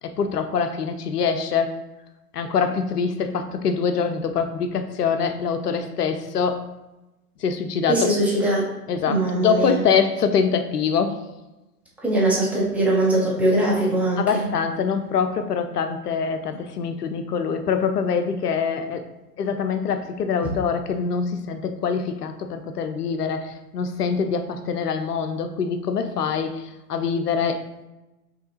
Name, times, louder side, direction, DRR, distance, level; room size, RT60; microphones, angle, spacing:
voice 1, 0.0-1.8 2.3-6.6 7.4-8.1 8.9-11.2 14.2-19.1 19.4-27.7, left 6 dB, 75° left, 8 dB, 0.6 m, -24 dB
voice 2, 7.9-8.7 9.1-9.7 12.0-14.4, right 1 dB, 5° right, -7 dB, 0.5 m, -21 dB
5.4 x 2.7 x 2.9 m, 1.0 s
figure-of-eight pair, 100°, 47 cm